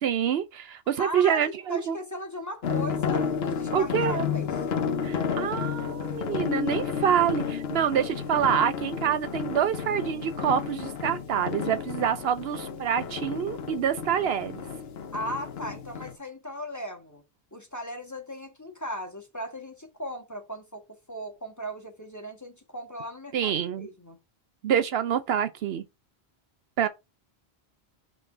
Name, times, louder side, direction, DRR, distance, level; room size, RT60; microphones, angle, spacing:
voice 1, 0.0-2.0 3.7-4.2 5.0-14.6 23.3-23.9 24.6-25.8 26.8-26.9, right 9 dB, 75° right, 0.8 m, -26 dB
voice 2, 1.0-1.4 1.7-4.5 15.1-17.2 17.5-23.5 23.8-24.2, equal, 15° left, 1.3 m, -37 dB
sound 1, 2.6-16.1, left 7 dB, 70° left, 1.0 m, -32 dB
5.5 x 3.2 x 5.4 m
omnidirectional pair, 1.1 m